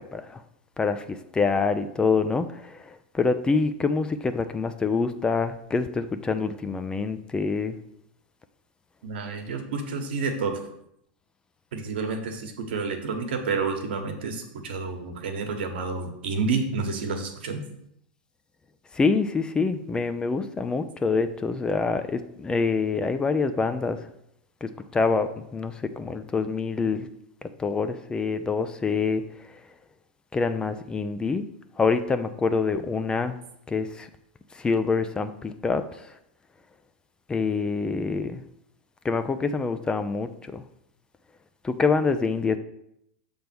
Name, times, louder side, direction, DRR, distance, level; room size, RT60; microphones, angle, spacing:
voice 1, 0.8-7.8 18.9-24.0 24.6-27.1 27.6-29.2 30.3-31.4 31.8-33.4 33.7-34.1 34.5-35.8 37.3-38.4 39.0-40.6 41.6-42.6, left 4 dB, 15° left, 10 dB, 0.4 m, -26 dB
voice 2, 9.0-10.6 11.7-17.6, right 4 dB, 75° right, 4 dB, 1.3 m, -29 dB
6.6 x 3.5 x 6.1 m, 0.77 s
hypercardioid pair, 115°, 6 cm